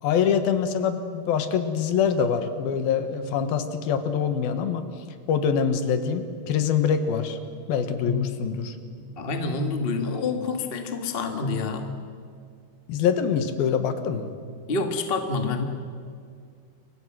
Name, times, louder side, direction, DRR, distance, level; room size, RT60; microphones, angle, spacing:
voice 1, 0.0-4.9 5.3-7.4 7.7-8.8 12.9-14.3, left 7 dB, 80° left, 9 dB, 3.1 m, -24 dB
voice 2, 9.2-11.9 14.7-15.6, left 3 dB, 35° left, 5 dB, 0.9 m, -27 dB
28.5 x 23.5 x 6.2 m, 2.3 s
omnidirectional pair, 4.4 m